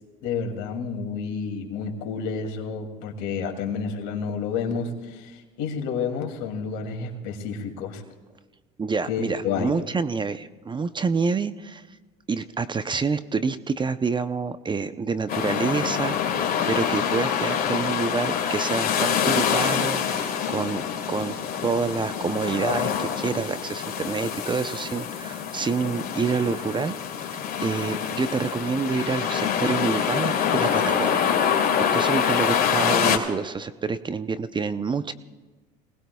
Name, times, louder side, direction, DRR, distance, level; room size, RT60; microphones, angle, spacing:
voice 1, 0.2-8.0 9.1-9.9, left 5 dB, 70° left, 4 dB, 2.7 m, -30 dB
voice 2, 8.8-11.8 12.3-20.8 21.1-21.4 21.6-27.0 27.6-35.1, right 5 dB, 25° right, 12 dB, 0.7 m, -27 dB
sound 1, 15.3-33.2, left 8 dB, 50° left, 3.0 m, -25 dB
26.5 x 19.5 x 2.3 m, 1.3 s
supercardioid pair, 80°, 20 cm